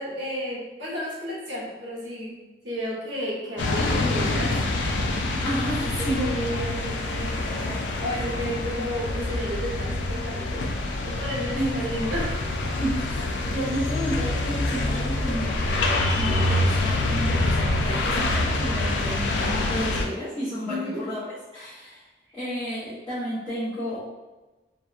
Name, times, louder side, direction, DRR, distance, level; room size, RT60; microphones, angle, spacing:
voice 1, 0.0-2.3 2.6-4.5 5.9-7.7 8.0-10.6 11.0-12.5 20.7-21.0, equal, 85° right, -6 dB, 0.9 m, -32 dB
sound 1, 3.6-20.1, left 2 dB, 85° left, 0.3 m, -26 dB
voice 2, 5.4-6.3 11.5-12.1 12.7-22.0 22.3-24.0, equal, 20° left, -14 dB, 0.8 m, -31 dB
2.7 x 2.1 x 2.3 m, 1.1 s
head